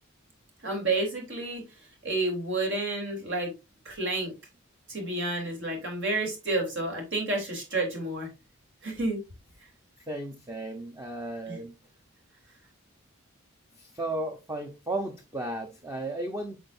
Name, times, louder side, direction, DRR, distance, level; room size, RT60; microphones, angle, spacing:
voice 1, 0.6-1.6 2.0-3.5 3.9-4.3 4.9-8.3 8.8-9.2 11.5-11.6, right 2 dB, 55° right, 3.5 m, -30 dB
voice 2, 10.0-11.7 13.8-16.6, right 1 dB, 15° right, 0.8 m, -34 dB
8.6 x 5.6 x 2.6 m
head